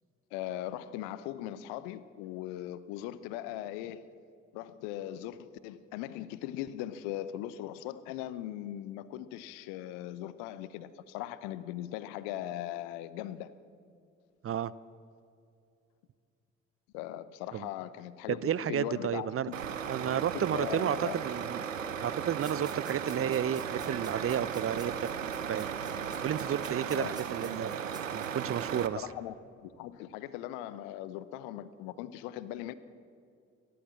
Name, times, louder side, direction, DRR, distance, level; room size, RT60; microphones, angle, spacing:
voice 1, 0.3-4.1 4.5-13.5 16.9-19.6 20.3-21.2 26.1-26.2 26.9-27.1 28.9-29.3 29.6-32.7, left 13 dB, 65° left, 16 dB, 0.9 m, -39 dB
voice 2, 18.3-19.5 19.9-21.0 21.2-21.6 22.0-24.9 25.4-25.7 26.2-27.8 28.1-29.0, right 9 dB, 35° right, 18 dB, 0.7 m, -32 dB
Truck, 19.5-28.9, right 7 dB, 85° right, 0.8 m, -36 dB
sound 1, 22.4-28.3, right 2 dB, 10° right, 3.7 m, -51 dB
29.5 x 13.0 x 7.5 m, 2.5 s
figure-of-eight pair, 40°, 38 cm